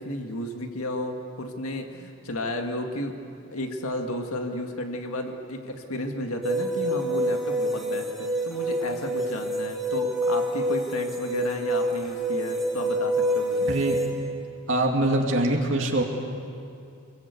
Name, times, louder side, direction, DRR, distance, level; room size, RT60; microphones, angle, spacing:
voice 1, 0.0-3.2 3.5-13.7, left 1 dB, 75° left, 3 dB, 2.0 m, -33 dB
sound 1, 6.4-14.1, right 1 dB, ahead, 2.6 m, -27 dB
voice 2, 13.7-14.0 14.7-16.0, right 1 dB, 60° right, 0 dB, 2.6 m, -23 dB
25.5 x 22.5 x 8.2 m, 2.5 s
head